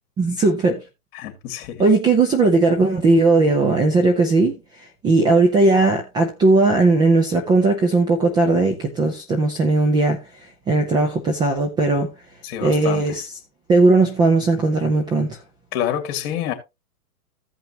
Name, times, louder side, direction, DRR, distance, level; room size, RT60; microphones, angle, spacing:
voice 1, 0.2-0.8 1.8-12.1 12.6-13.3 13.7-15.4, right 3 dB, 10° right, 0.6 m, -18 dB
voice 2, 1.1-1.8 12.4-13.0 15.7-16.5, left 10 dB, 40° left, 2.7 m, -27 dB
15.5 x 5.8 x 2.9 m
hypercardioid pair, 145°, 46 cm